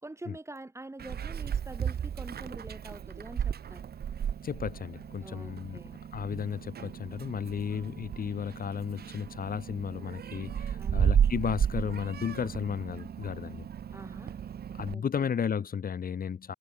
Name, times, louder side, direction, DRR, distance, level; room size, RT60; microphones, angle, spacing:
voice 1, 0.0-3.9 5.2-6.0 10.8-11.1 13.9-14.4 14.9-15.3, right 2 dB, 15° right, 3.6 m, -45 dB
Meow, 1.0-14.9, right 8 dB, 50° right, 1.9 m, -33 dB
voice 2, 4.4-5.8 6.1-13.6 14.7-16.5, left 7 dB, 45° left, 2.3 m, -34 dB
cardioid pair, 90°, 20 cm